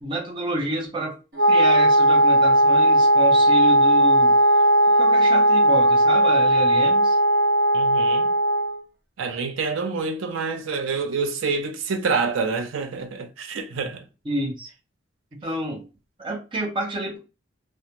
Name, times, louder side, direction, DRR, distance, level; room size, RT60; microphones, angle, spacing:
voice 1, 0.0-1.2 1.5-4.4 5.0-7.2 14.2-14.7 15.3-15.8 16.2-17.2, right 2 dB, 25° right, 0.6 m, -29 dB
Wind instrument woodwind instrument, 1.4-8.8, right 1 dB, 60° right, 1.0 m, -17 dB
voice 2, 7.7-8.3 9.2-14.0, right 4 dB, 85° right, 0.5 m, -27 dB
2.4 x 2.1 x 2.8 m
head